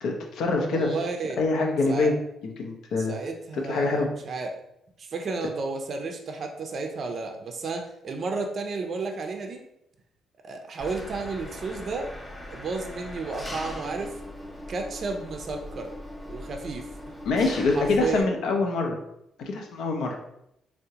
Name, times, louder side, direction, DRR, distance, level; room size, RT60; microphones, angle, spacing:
voice 1, 0.0-0.9 1.4-2.1 2.4-3.1 3.7-4.1 17.3-19.0 19.4-20.2, left 3 dB, 75° left, 2 dB, 0.5 m, -25 dB
voice 2, 0.7-1.4 1.9-2.1 3.0-4.6 5.0-9.6 10.4-12.2 12.5-14.1 14.7-15.9 16.3-16.9 17.7-18.3, right 3 dB, 50° right, 4 dB, 0.4 m, -32 dB
Engine, 10.8-18.2, left 1 dB, 15° left, 0.5 m, -40 dB
3.6 x 2.1 x 2.8 m, 0.79 s
cardioid pair, 90°, 0 cm